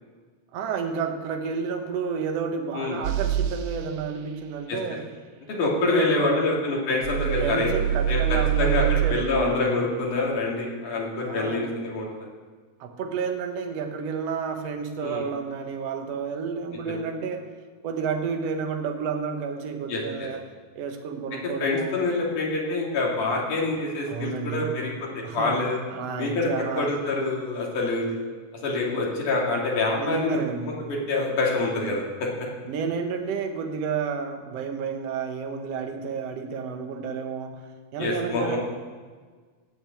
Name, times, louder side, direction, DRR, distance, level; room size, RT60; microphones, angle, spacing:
voice 1, 0.5-5.0 5.6-6.5 7.4-9.7 11.2-11.7 12.8-17.5 17.8-20.4 20.8-22.0 24.1-24.8 25.2-25.5 25.9-26.9 30.0-30.8 32.7-38.6, right 5 dB, 60° right, 4 dB, 2.1 m, -30 dB
sound 1, 3.0-3.6 7.0-9.2, right 11 dB, 85° right, 2.2 m, -24 dB
voice 2, 5.5-7.7 8.1-12.3 15.0-15.2 16.9-17.0 19.9-20.3 21.6-25.8 26.2-28.1 28.6-30.4 30.6-32.3 38.0-38.6, left 3 dB, 80° left, -3 dB, 4.3 m, -26 dB
18.0 x 6.6 x 8.5 m, 1.5 s
omnidirectional pair, 3.5 m